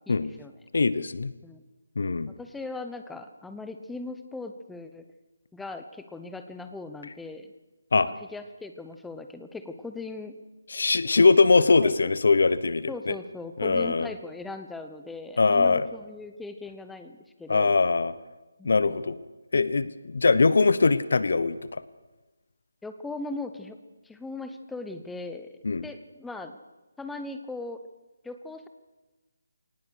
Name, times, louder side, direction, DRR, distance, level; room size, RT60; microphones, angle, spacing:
voice 1, 0.1-0.5 1.4-1.6 2.3-5.1 5.5-7.5 8.1-10.4 11.8-11.9 12.9-17.8 18.6-19.1 22.8-23.8 24.0-26.6 27.0-27.9 28.2-28.7, left 3 dB, 5° left, 8 dB, 0.8 m, -39 dB
voice 2, 0.7-1.3 2.0-2.3 7.9-8.1 10.7-13.1 13.6-14.1 15.4-15.9 17.5-18.1 18.6-19.2 19.5-21.8 25.6-25.8, left 4 dB, 65° left, 16 dB, 1.0 m, -22 dB
22.5 x 18.5 x 6.4 m, 1.1 s
hypercardioid pair, 170°, 0 cm